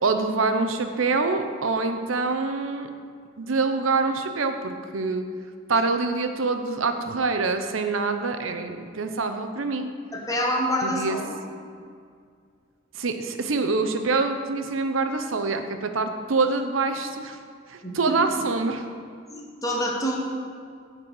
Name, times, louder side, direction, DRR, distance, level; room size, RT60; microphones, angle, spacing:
voice 1, 0.0-2.9 3.4-5.2 5.7-9.9 10.8-11.2 12.9-17.4 17.7-18.8, right 3 dB, 75° right, 7 dB, 0.8 m, -25 dB
voice 2, 10.3-11.4 17.8-17.9 19.3-20.2, equal, 15° left, -1 dB, 1.2 m, -26 dB
9.8 x 4.5 x 7.8 m, 2.2 s
head